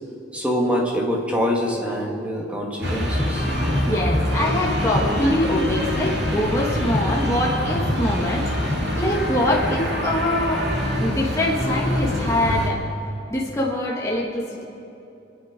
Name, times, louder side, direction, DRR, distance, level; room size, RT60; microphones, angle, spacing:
voice 1, 0.3-4.0, equal, 5° right, -1 dB, 1.9 m, -25 dB
sound 1, 2.8-12.7, left 1 dB, 60° right, 2.4 m, -24 dB
voice 2, 3.8-10.7 11.0-12.8 13.3-14.6, left 1 dB, 15° left, -4 dB, 1.4 m, -24 dB
24.5 x 9.8 x 5.1 m, 2.8 s
head